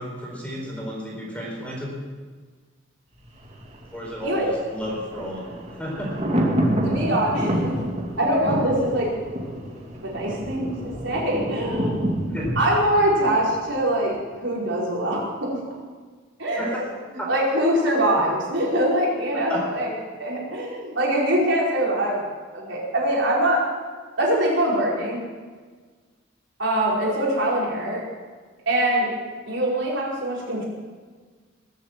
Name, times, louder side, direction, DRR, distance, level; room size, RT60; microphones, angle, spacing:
voice 1, 0.0-2.0 3.9-6.1 12.3-12.6 16.6-16.9 17.2-17.3 18.1-18.3 19.3-19.7, equal, 5° left, -3 dB, 4.3 m, -32 dB
Thunder, 3.2-14.2 14.5-14.6, equal, 35° right, 2.6 m, -28 dB
voice 2, 6.8-7.8 8.2-9.1 10.0-12.3 12.6-14.1 14.4-15.6 16.4-16.8 17.3-19.9 20.2-22.3 22.5-23.6 24.2-25.2 26.6-28.0 28.6-29.1 29.5-30.7, right 1 dB, 65° right, -4 dB, 4.8 m, -23 dB
21.5 x 8.1 x 7.5 m, 1.5 s
head